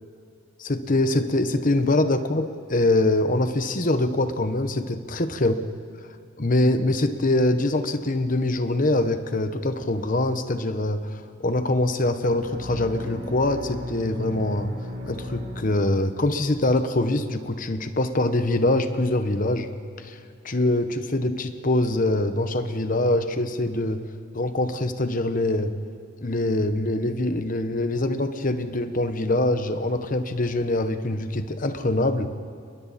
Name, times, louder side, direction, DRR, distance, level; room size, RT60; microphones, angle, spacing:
voice 1, 0.6-5.5 6.4-11.0 11.4-14.7 15.0-19.7 20.0-20.2 20.4-24.0 24.3-25.7 26.2-32.3, left 2 dB, 45° left, 9 dB, 1.1 m, -24 dB
sound 1, 12.4-16.3, left 1 dB, 55° right, 3.0 m, -35 dB
29.5 x 21.0 x 4.3 m, 2.6 s
head